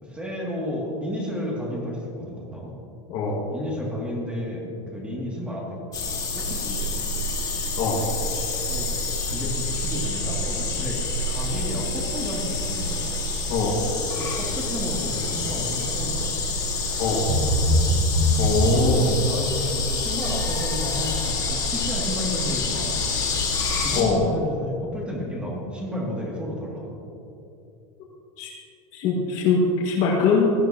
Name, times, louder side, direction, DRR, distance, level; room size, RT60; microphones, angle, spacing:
voice 1, 0.0-2.8 3.5-5.8 6.3-7.3 8.7-8.9 9.2-13.2 14.2-16.4 18.7-23.0 23.8-27.0, left 1 dB, 5° right, -4 dB, 2.7 m, -32 dB
voice 2, 3.1-3.4 7.8-8.1 13.5-13.8 17.0-17.3 18.4-19.2 23.9-24.3 28.4-28.5 28.9-30.5, left 4 dB, 45° left, -6 dB, 2.0 m, -22 dB
sound 1, 5.9-24.0, left 3 dB, 20° left, 2.0 m, -27 dB
sound 2, 16.0-16.2 16.4-16.9 17.2-19.2 19.6-20.0 20.5-20.6, equal, 80° right, 1.7 m, -22 dB
17.5 x 14.0 x 3.0 m, 2.8 s
supercardioid pair, 155°, 17 cm